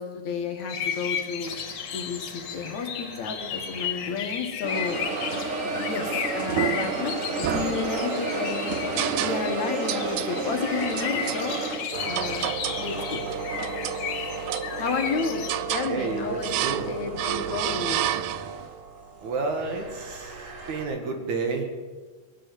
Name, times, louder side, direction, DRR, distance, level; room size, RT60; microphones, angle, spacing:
voice 1, 0.0-1.5 1.9-5.0 5.7-11.6 12.0-12.5 12.8-13.2 14.8-18.1, left 5 dB, 65° left, 3 dB, 2.8 m, -32 dB
sound 1, 0.7-15.6, left 8 dB, 85° left, 2.8 m, -34 dB
sound 2, 1.4-4.2 4.6-20.8, right 3 dB, 55° right, 0.9 m, -33 dB
sound 3, 6.5-7.0 7.4-8.3 9.0-9.6 9.9-10.3 11.0-11.4 12.1-12.9 13.3-14.0 14.5-15.1 15.5-15.9 16.4-16.9 17.2-18.6, right 13 dB, 85° right, 1.4 m, -30 dB
voice 2, 15.9-16.9 19.2-20.3 20.7-21.6, right 4 dB, 70° right, 3 dB, 3.2 m, -30 dB
20.5 x 7.7 x 8.2 m, 1.4 s
omnidirectional pair, 3.5 m